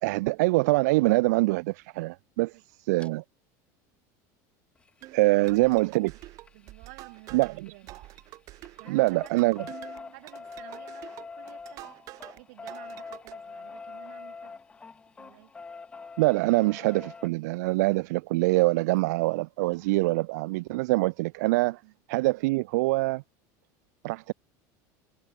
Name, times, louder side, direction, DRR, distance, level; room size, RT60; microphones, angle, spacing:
voice 1, 0.0-2.5 2.8-3.2 5.1-6.1 7.3-7.7 8.9-9.6 16.2-21.8 22.1-23.2 24.0-24.3, right 22 dB, 85° right, 0.4 m, -24 dB
sound 1, 3.0-3.1 4.8-8.3 8.6-17.3 19.0-19.1 19.3-19.4 19.7-19.8, left 4 dB, 10° left, 1.4 m, -45 dB
sound 2, 5.0-12.4 12.7-13.3, right 17 dB, 40° right, 6.2 m, -47 dB
voice 2, 5.4-5.9 6.5-8.0 8.8-9.7 10.1-11.9 12.3-14.6 15.2-15.5 21.8-22.0, right 27 dB, 65° right, 5.7 m, -52 dB
cardioid pair, 170°, 9 cm